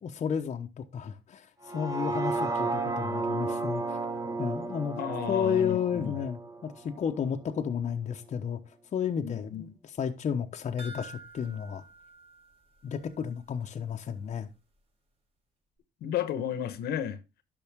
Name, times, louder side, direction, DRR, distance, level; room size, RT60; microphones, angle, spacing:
voice 1, 0.0-1.5 1.7-4.0 4.4-5.0 5.3-8.6 8.9-11.8 12.8-14.5, left 7 dB, 40° left, 0.9 m, -32 dB
sound 1, 1.6-7.8 8.2-8.3, right 3 dB, 20° right, 1.1 m, -33 dB
voice 2, 5.0-6.1 9.2-9.7 16.0-17.2, left 9 dB, 70° left, 1.1 m, -33 dB
sound 2, 10.8-13.3 13.6-13.7 14.1-14.2, right 3 dB, 35° right, 3.6 m, -49 dB
10.5 x 6.2 x 3.6 m
cardioid pair, 110°, 17 cm